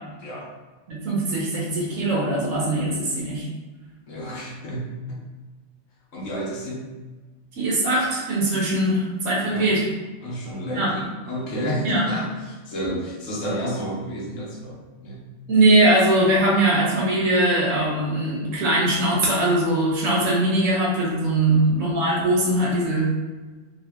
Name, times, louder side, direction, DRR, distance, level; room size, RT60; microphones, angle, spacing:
voice 1, 0.2-0.5 4.1-5.2 6.1-6.9 9.5-9.7 10.2-15.2 21.5-21.7, equal, 85° left, -3 dB, 1.3 m, -30 dB
voice 2, 0.9-3.5 7.6-9.8 10.7-10.9 11.8-12.0 15.5-23.1, right 1 dB, 85° right, -5 dB, 1.4 m, -21 dB
3.9 x 2.2 x 3.5 m, 1.3 s
omnidirectional pair, 1.3 m